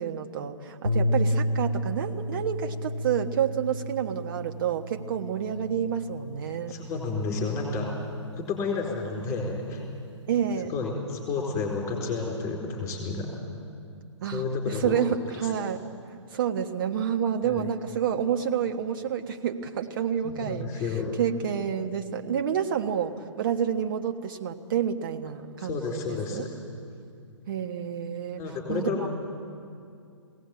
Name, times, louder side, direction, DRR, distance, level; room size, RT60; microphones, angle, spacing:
voice 1, 0.0-6.8 10.3-10.7 14.2-15.8 16.3-20.7 21.2-26.5 27.5-29.1, right 8 dB, 45° right, 6 dB, 1.4 m, -29 dB
sound 1, 0.8-9.2, left 1 dB, 80° right, 2.5 m, -32 dB
voice 2, 6.7-7.9 8.3-9.8 10.7-13.3 14.3-15.0 17.4-17.7 20.2-21.1 25.6-26.4 28.4-29.1, left 4 dB, 20° left, -1 dB, 4.1 m, -31 dB
20.0 x 17.5 x 8.4 m, 2.4 s
figure-of-eight pair, 125°, 16 cm